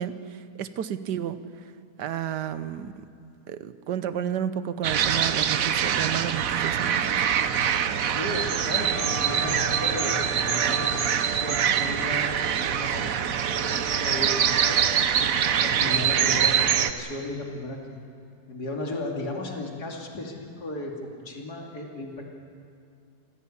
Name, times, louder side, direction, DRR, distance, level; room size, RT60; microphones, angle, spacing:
voice 1, 0.0-1.4 2.0-2.9 3.5-7.2, right 9 dB, 85° right, 13 dB, 1.5 m, -31 dB
sound 1, 4.8-16.9, right 8 dB, 60° right, 1.2 m, -24 dB
voice 2, 8.0-14.9 15.6-18.0 18.5-20.9 21.2-22.2, left 2 dB, 70° left, 0 dB, 3.3 m, -35 dB
sound 2, 8.9-15.0, right 3 dB, 40° right, 2.3 m, -37 dB
25.5 x 16.5 x 8.6 m, 2.4 s
omnidirectional pair, 1.8 m